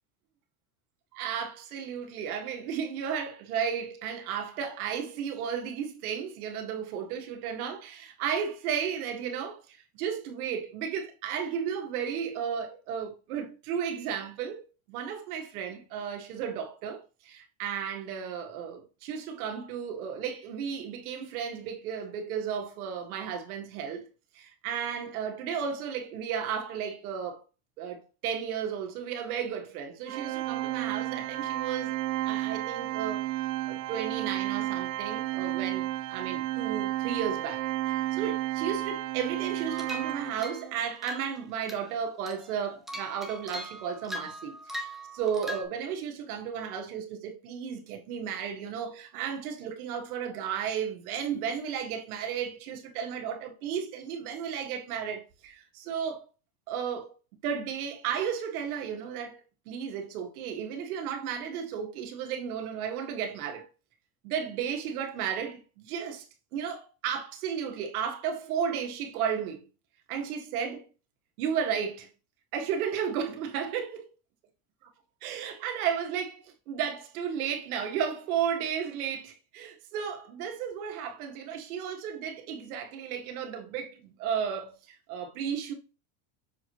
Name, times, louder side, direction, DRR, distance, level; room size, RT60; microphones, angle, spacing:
voice 1, 1.1-14.6 14.9-24.1 24.3-27.4 27.8-32.0 32.3-33.3 33.7-56.2 56.7-57.1 57.4-59.4 59.7-63.7 64.2-66.3 66.5-69.6 70.1-70.8 71.4-72.1 72.5-74.1 74.8-74.9 75.2-85.7, right 7 dB, 80° right, 1.9 m, -34 dB
Organ, 30.1-40.8, right 16 dB, 60° right, 0.6 m, -32 dB
sound 1, 39.7-40.6 41.0-41.4 41.7-41.9 42.3-45.6, equal, ahead, 0.3 m, -40 dB
6.9 x 4.7 x 3.0 m
supercardioid pair, 165°, 43 cm